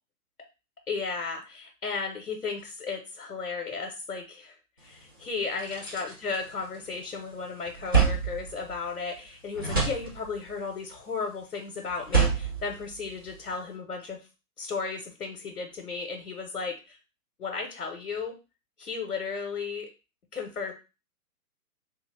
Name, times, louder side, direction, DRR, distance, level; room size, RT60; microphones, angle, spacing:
voice 1, 0.9-14.3 14.6-17.0 17.4-18.4 18.8-19.9 20.3-20.7, left 4 dB, 65° left, 2 dB, 0.8 m, -34 dB
sound 1, 4.9-5.0 5.4-7.1 7.4-9.3 9.5-10.6 11.9-13.5, right 5 dB, 15° right, 0.4 m, -28 dB
3.5 x 2.3 x 3.2 m, 0.29 s
figure-of-eight pair, 120°, 46 cm